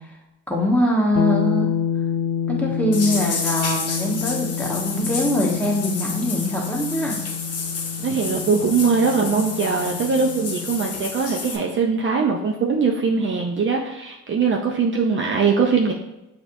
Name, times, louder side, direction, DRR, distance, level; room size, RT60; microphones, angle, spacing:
voice 1, 0.5-1.7 2.5-7.2, left 1 dB, 5° left, -3 dB, 1.2 m, -22 dB
sound 1, 1.2-10.9, left 8 dB, 75° left, 0.5 m, -28 dB
sound 2, 2.9-11.6, left 4 dB, 55° left, 0.8 m, -30 dB
voice 2, 8.0-15.9, right 5 dB, 40° right, 0 dB, 0.5 m, -21 dB
6.1 x 2.9 x 2.6 m, 0.96 s
cardioid pair, 90°, 30 cm